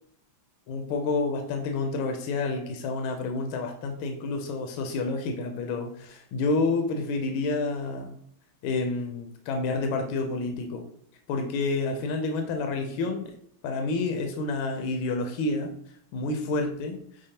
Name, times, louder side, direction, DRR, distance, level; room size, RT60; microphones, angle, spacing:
voice 1, 0.7-8.1 8.6-10.8 11.3-13.3 13.6-15.7 16.1-17.0, left 3 dB, 80° left, 4 dB, 1.4 m, -29 dB
6.2 x 2.1 x 2.7 m, 0.65 s
omnidirectional pair, 2.3 m